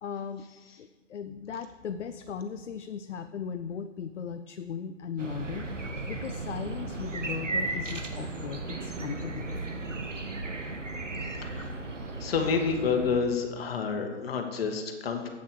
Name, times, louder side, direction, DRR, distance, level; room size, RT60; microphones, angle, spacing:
voice 1, 0.0-0.5 0.8-5.7 6.0-9.7, left 7 dB, 70° left, 10 dB, 0.6 m, -37 dB
sound 1, 5.2-13.2, right 2 dB, 90° right, 1.3 m, -35 dB
voice 2, 11.2-11.7 12.2-15.3, left 5 dB, 55° left, 4 dB, 1.7 m, -29 dB
8.7 x 7.4 x 6.7 m, 1.3 s
figure-of-eight pair, 125°, 36 cm